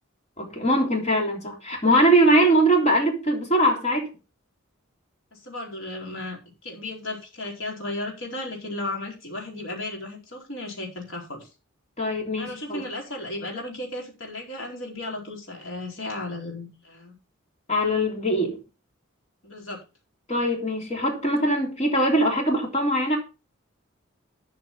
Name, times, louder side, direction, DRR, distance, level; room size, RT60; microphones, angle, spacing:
voice 1, 0.4-4.1 12.0-12.8 17.7-18.6 20.3-23.2, right 1 dB, 30° left, 3.3 m, -22 dB
voice 2, 5.3-11.5 12.4-17.2 19.4-19.8, left 2 dB, 70° left, 4.3 m, -35 dB
12.5 x 5.9 x 5.5 m
head